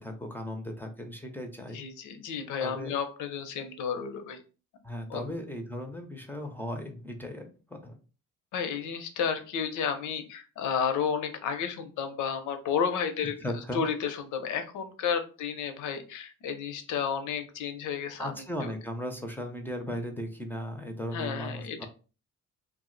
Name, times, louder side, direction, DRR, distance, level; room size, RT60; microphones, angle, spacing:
voice 1, 0.0-1.8 2.6-2.9 4.8-8.0 13.4-13.8 18.2-21.9, equal, 5° left, 4 dB, 0.5 m, -37 dB
voice 2, 1.7-4.4 5.1-5.2 8.5-13.4 13.7-18.3 18.6-18.7 21.1-21.9, left 7 dB, 80° left, 8 dB, 0.7 m, -32 dB
2.4 x 2.0 x 3.8 m, 0.35 s
cardioid pair, 90°, 30 cm